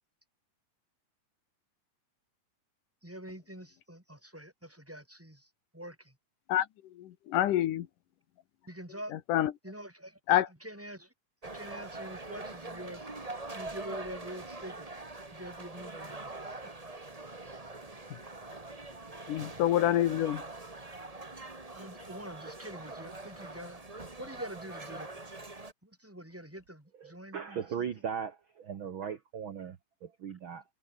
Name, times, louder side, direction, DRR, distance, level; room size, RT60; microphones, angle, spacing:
voice 1, 3.0-5.5 5.7-6.1 8.7-9.2 9.6-11.1 11.5-13.1 13.5-14.9 15.3-16.3 16.6-16.7 21.7-23.8 24.2-25.1 25.8-27.9, right 1 dB, 5° right, 2.7 m, -45 dB
voice 2, 6.5-7.9 9.1-9.5 10.3-10.5 19.3-20.4, left 12 dB, 65° left, 2.6 m, -27 dB
sound 1, 11.4-25.7, right 2 dB, 20° right, 0.9 m, -44 dB
voice 3, 27.0-30.6, right 7 dB, 70° right, 1.2 m, -38 dB
omnidirectional pair, 4.2 m